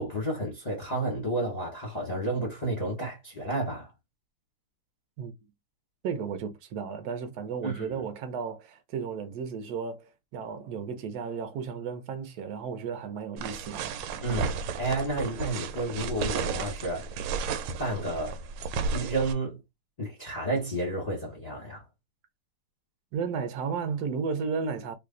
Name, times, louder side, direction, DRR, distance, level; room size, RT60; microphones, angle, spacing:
voice 1, 0.0-3.9 7.6-7.9 14.2-17.1 17.8-18.4 18.9-19.6 20.0-21.8, right 2 dB, 30° left, 0.8 m, -31 dB
voice 2, 6.0-13.9 23.1-24.9, right 6 dB, 60° right, 1.1 m, -34 dB
sound 1, 13.4-19.3, right 5 dB, 85° right, 1.5 m, -33 dB
3.2 x 2.4 x 3.8 m
omnidirectional pair, 2.3 m